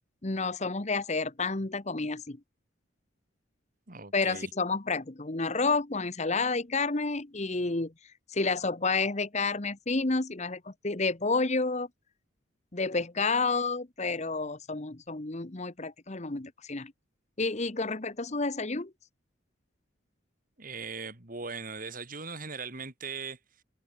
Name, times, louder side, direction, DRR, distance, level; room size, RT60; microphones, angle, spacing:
voice 1, 0.2-2.4 4.1-7.9 8.3-11.9 12.7-16.9 17.4-18.9, left 3 dB, 35° left, 1.1 m, -30 dB
voice 2, 3.9-4.5 20.6-23.6, right 4 dB, 45° right, 2.8 m, -40 dB
open air
head